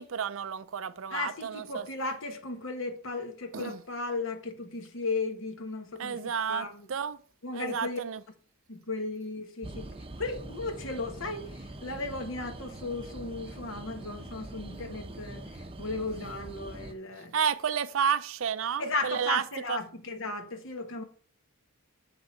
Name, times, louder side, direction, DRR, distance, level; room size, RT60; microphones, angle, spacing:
voice 1, 0.0-1.9 3.5-3.8 6.0-7.2 7.5-8.2 17.3-19.4 19.7-19.8, right 7 dB, 60° right, 0.5 m, -31 dB
voice 2, 1.1-6.9 7.4-8.0 8.7-9.9 10.2-17.4 18.8-21.0, left 3 dB, 60° left, 1.3 m, -35 dB
sound 1, 9.6-16.9, right 2 dB, 25° right, 0.7 m, -43 dB
7.0 x 6.5 x 4.5 m
head